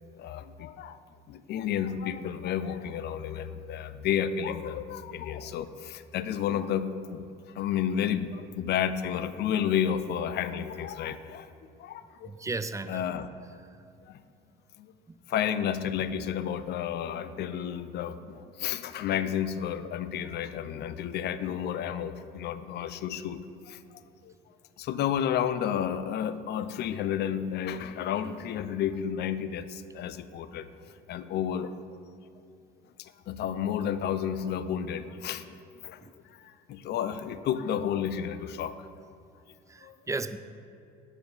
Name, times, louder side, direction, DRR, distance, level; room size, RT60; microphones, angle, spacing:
voice 1, 0.1-1.0 1.3-7.3 7.5-11.5 11.8-12.3 12.9-13.3 14.1-14.2 14.8-14.9 15.3-23.4 23.7-23.8 24.2-24.3 24.8-30.7 31.1-31.8 33.0-35.4 35.8-36.1 36.4-38.8 39.8-40.0, left 9 dB, 55° left, 13 dB, 0.5 m, -31 dB
voice 2, 12.2-13.0 13.6-13.8 15.1-15.2 36.0-36.1 39.7-40.4, right 3 dB, 15° right, 11 dB, 0.4 m, -35 dB
7.8 x 5.1 x 5.4 m, 2.5 s
supercardioid pair, 75°, 20 cm